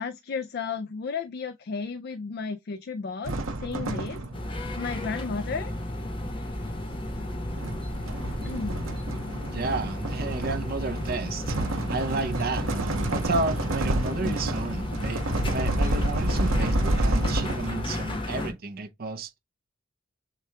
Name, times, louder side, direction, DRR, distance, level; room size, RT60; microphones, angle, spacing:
voice 1, 0.0-4.2 4.8-5.7 8.2-8.8 14.2-14.4, left 5 dB, 50° left, 0.4 m, -33 dB
sound 1, 3.2-4.6 5.8-18.0, right 1 dB, 80° right, 0.9 m, -29 dB
sound 2, 4.3-18.5, left 1 dB, 25° left, 0.9 m, -33 dB
voice 2, 9.5-11.6 11.9-12.7 13.1-15.2 15.5-19.3, right 3 dB, 45° right, 0.6 m, -32 dB
6.5 x 2.3 x 2.8 m
head